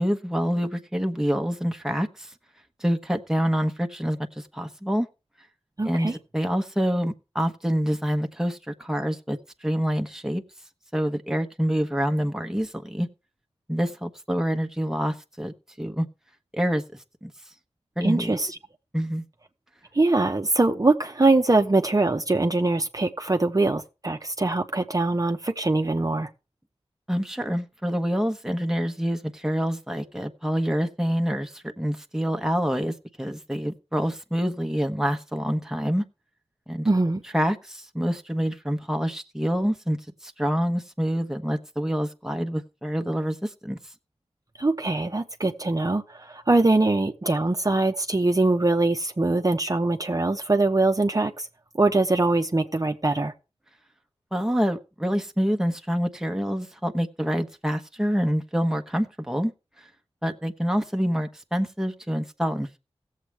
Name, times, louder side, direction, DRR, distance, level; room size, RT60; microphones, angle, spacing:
voice 1, 0.0-2.3 2.8-5.1 5.9-10.4 10.9-13.1 13.7-16.1 16.5-16.8 17.2-17.3 18.0-18.3 18.9-19.2 27.1-36.0 36.7-36.9 37.3-40.0 40.2-43.8 54.3-59.5 60.2-62.8, equal, 5° right, 1.1 m, -26 dB
voice 2, 5.8-6.1 18.0-18.6 19.9-26.3 36.8-37.2 44.6-51.5 51.7-53.3, right 2 dB, 35° right, 0.9 m, -22 dB
16.5 x 7.5 x 3.4 m
cardioid pair, 40°, 11 cm